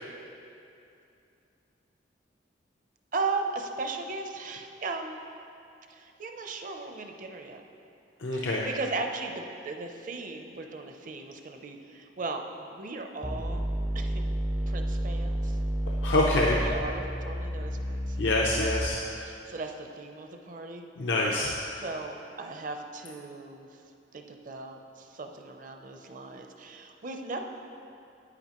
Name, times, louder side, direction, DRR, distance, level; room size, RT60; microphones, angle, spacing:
voice 1, 3.1-5.2 5.9-7.6 8.3-13.7 13.9-14.3 14.7-15.6 16.6-18.2 19.2-20.9 21.8-23.8 24.1-27.4, right 3 dB, 45° right, 5 dB, 0.6 m, -37 dB
voice 2, 8.2-8.7 16.0-16.6 18.2-19.0 21.0-21.5, left 2 dB, 85° left, -2 dB, 0.7 m, -25 dB
sound 1, 13.2-19.2, equal, 5° right, 0.3 m, -31 dB
9.9 x 8.8 x 3.0 m, 2.7 s
head